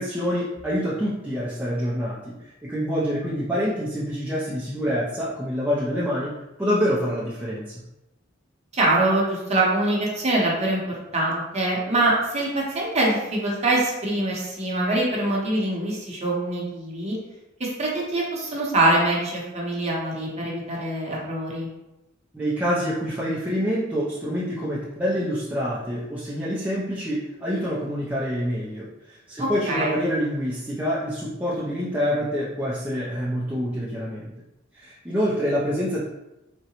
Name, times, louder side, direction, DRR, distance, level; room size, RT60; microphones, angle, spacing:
voice 1, 0.0-2.4 2.6-6.3 6.6-7.6 22.3-28.9 29.3-34.3 34.7-36.1, equal, 10° right, -8 dB, 0.4 m, -26 dB
voice 2, 8.7-17.2 17.6-21.7 29.4-30.0, right 2 dB, 35° right, -3 dB, 0.8 m, -24 dB
3.7 x 2.1 x 2.8 m, 0.96 s
head